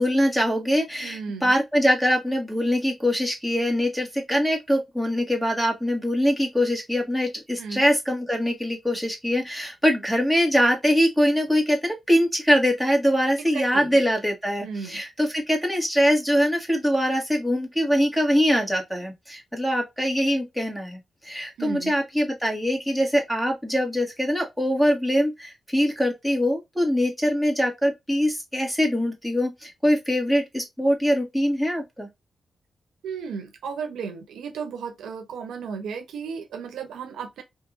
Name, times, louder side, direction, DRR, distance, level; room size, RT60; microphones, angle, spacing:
voice 1, 0.0-32.1, equal, ahead, 1.7 m, -23 dB
voice 2, 1.0-1.5 7.6-7.8 13.4-13.9 14.6-15.0 21.6-21.9 33.0-37.4, right 6 dB, 85° right, 0.6 m, -34 dB
3.6 x 2.7 x 2.5 m
supercardioid pair, 50°, 0 cm